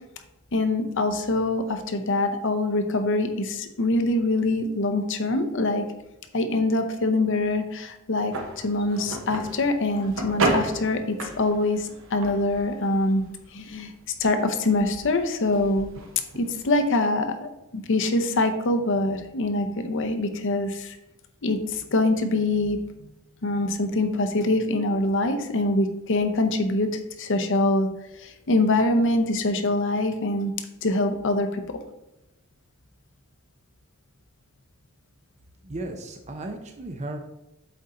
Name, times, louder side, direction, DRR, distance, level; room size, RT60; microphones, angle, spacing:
voice 1, 0.5-5.8 6.3-13.2 13.5-13.9 14.2-15.9 16.3-21.0 21.4-23.1 23.4-26.9 27.2-27.9 28.2-30.5 30.8-31.6, left 2 dB, 60° left, 7 dB, 0.7 m, -24 dB
sound 1, 8.3-17.0, right 2 dB, 65° right, 0.9 m, -33 dB
voice 2, 35.6-37.2, right 2 dB, 35° right, 4 dB, 0.6 m, -35 dB
7.7 x 4.3 x 3.8 m, 0.91 s
head